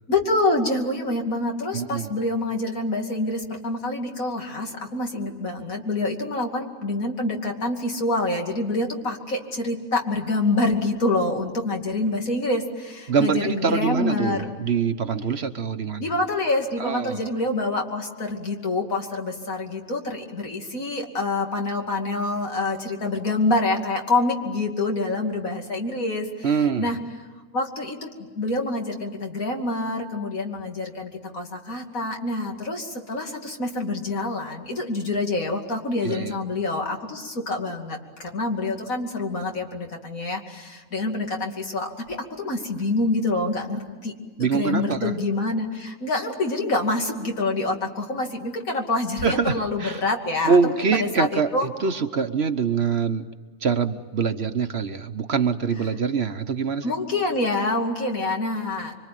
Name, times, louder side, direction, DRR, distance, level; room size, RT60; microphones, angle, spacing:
voice 1, 0.1-14.5 16.0-27.0 27.5-44.1 44.4-51.7 56.8-59.0, left 2 dB, 80° left, 2 dB, 3.1 m, -26 dB
voice 2, 1.7-2.1 13.1-16.1 16.8-17.3 26.4-26.9 36.0-36.3 44.4-45.1 49.2-50.0 50.4-53.2 53.6-56.9, right 5 dB, 50° right, 9 dB, 1.2 m, -24 dB
25.5 x 25.0 x 9.2 m, 1.4 s
omnidirectional pair, 1.4 m